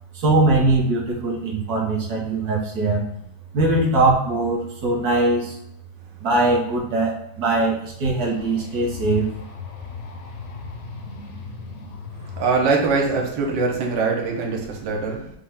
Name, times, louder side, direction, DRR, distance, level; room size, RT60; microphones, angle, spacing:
voice 1, 0.1-3.0 3.5-5.5 6.2-9.3, right 2 dB, 60° right, -2 dB, 1.4 m, -21 dB
sound 1, 8.2-13.2, left 7 dB, 60° left, 0.8 m, -38 dB
voice 2, 12.4-15.4, right 4 dB, 85° right, 0 dB, 1.5 m, -22 dB
5.5 x 2.1 x 3.5 m, 0.74 s
omnidirectional pair, 1.9 m